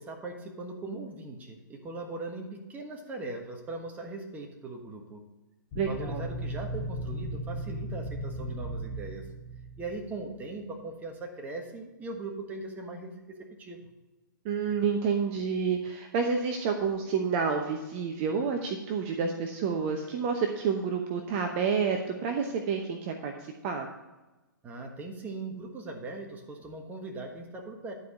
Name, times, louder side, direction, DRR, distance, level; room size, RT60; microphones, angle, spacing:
voice 1, 0.0-5.2 5.8-9.3 9.8-13.9 24.6-27.9, right 2 dB, 15° right, 3 dB, 1.3 m, -40 dB
sound 1, 5.7-10.4, right 1 dB, 35° left, 1.9 m, -36 dB
voice 2, 5.8-6.2 14.4-23.9, right 5 dB, 35° right, 4 dB, 0.9 m, -29 dB
11.0 x 4.7 x 5.2 m, 1.1 s
hypercardioid pair, 130°, 11 cm